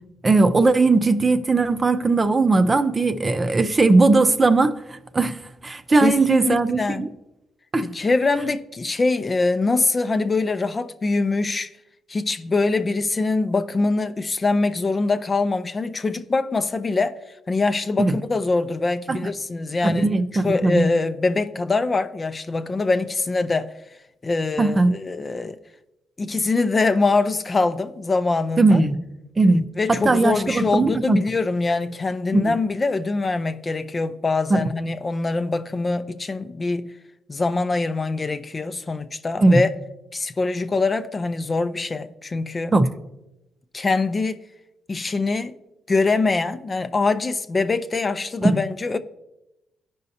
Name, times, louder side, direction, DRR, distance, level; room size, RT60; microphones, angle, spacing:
voice 1, 0.2-5.4 5.6-7.1 7.7-7.9 18.0-18.2 19.1-19.2 19.8-20.9 24.6-24.9 28.6-29.0 29.4-31.2 32.3-32.5 34.5-34.6 39.4-39.6 42.7-42.9 48.4-48.6, right 3 dB, 25° right, 0.6 m, -18 dB
voice 2, 5.9-7.1 7.8-11.7 12.1-17.2 17.5-20.1 20.3-23.7 24.2-25.6 26.2-28.8 29.8-36.9 37.3-39.7 40.1-42.7 43.7-44.4 44.9-45.5 45.9-49.0, left 3 dB, 30° left, 0.5 m, -23 dB
15.5 x 5.3 x 2.8 m
cardioid pair, 90°, 0 cm